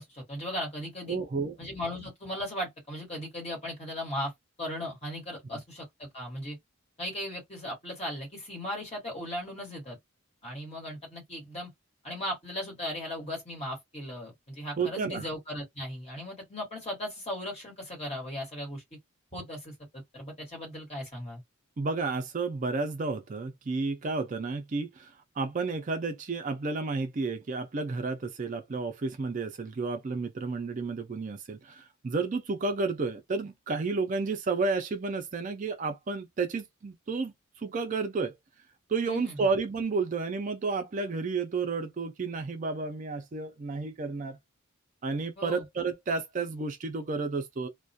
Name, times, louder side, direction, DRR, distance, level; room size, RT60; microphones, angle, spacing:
voice 1, 0.0-1.2 1.6-4.3 4.6-6.6 7.0-10.0 10.4-11.7 12.0-18.8 19.3-21.4 39.0-39.4 45.4-45.6, left 1 dB, 30° left, 1.4 m, -37 dB
voice 2, 1.1-1.6 5.5-5.6 14.8-15.3 21.8-38.4 38.9-44.4 45.0-47.7, right 4 dB, 35° right, 0.4 m, -31 dB
2.3 x 2.1 x 2.6 m
head